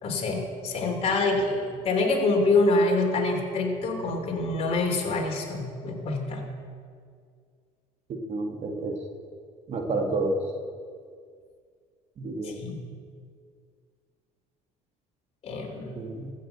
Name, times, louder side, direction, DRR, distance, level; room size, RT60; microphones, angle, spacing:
voice 1, 0.0-6.5 12.4-12.8 15.4-16.0, left 2 dB, 45° left, 1 dB, 2.8 m, -26 dB
voice 2, 8.3-9.0 9.7-10.4 12.2-12.6 16.0-16.3, right 2 dB, 45° right, 3 dB, 1.7 m, -29 dB
14.0 x 6.4 x 7.9 m, 2.1 s
cardioid pair, 105°, 15 cm